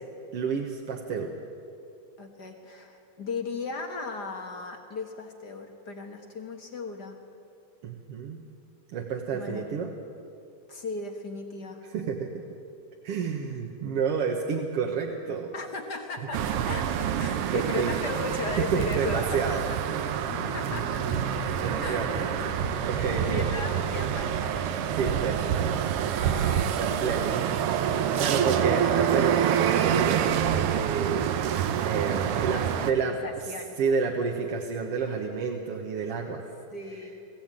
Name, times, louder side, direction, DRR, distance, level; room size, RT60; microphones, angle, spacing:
voice 1, 0.3-1.4 7.8-8.4 8.9-9.9 11.8-12.5 13.0-15.5 17.5-18.0 18.6-19.6 21.3-21.4 21.6-23.5 25.0-25.6 26.8-27.5 28.2-33.5 33.8-36.4, right 5 dB, 55° right, 1 dB, 1.9 m, -30 dB
voice 2, 2.2-7.2 9.3-9.7 10.7-11.8 15.5-19.6 20.5-21.1 21.8-22.3 22.8-24.8 26.2-27.0 28.0-29.0 32.2-33.8 36.7-37.2, left 3 dB, 55° left, 3 dB, 1.2 m, -37 dB
sound 1, 16.3-32.9, right 9 dB, 85° right, 1.3 m, -27 dB
sound 2, 20.3-25.5, left 8 dB, 75° left, 1.4 m, -42 dB
21.0 x 15.5 x 9.0 m, 2.5 s
omnidirectional pair, 3.7 m